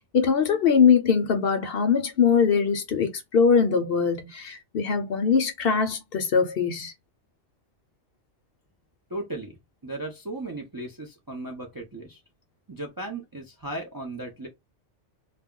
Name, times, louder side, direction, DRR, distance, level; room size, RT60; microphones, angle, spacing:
voice 1, 0.1-6.9, left 6 dB, 60° left, 0.8 m, -22 dB
voice 2, 9.1-9.6 9.8-12.2 12.7-14.5, right 2 dB, 25° right, 0.5 m, -36 dB
2.3 x 2.2 x 3.6 m
omnidirectional pair, 1.2 m